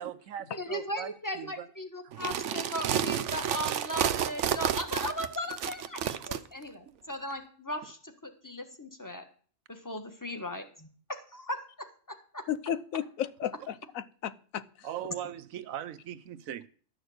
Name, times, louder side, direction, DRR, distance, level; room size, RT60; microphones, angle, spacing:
voice 1, 0.0-1.7 2.0-2.1 6.9-7.0 14.8-16.7, right 10 dB, 85° right, 1.2 m, -40 dB
voice 2, 0.5-9.3 9.7-12.5, left 1 dB, 15° left, 1.4 m, -37 dB
sound 1, 2.1-6.4, right 9 dB, 65° right, 1.0 m, -30 dB
voice 3, 12.5-14.9, left 10 dB, 85° left, 1.2 m, -34 dB
12.5 x 6.6 x 7.9 m
omnidirectional pair, 1.4 m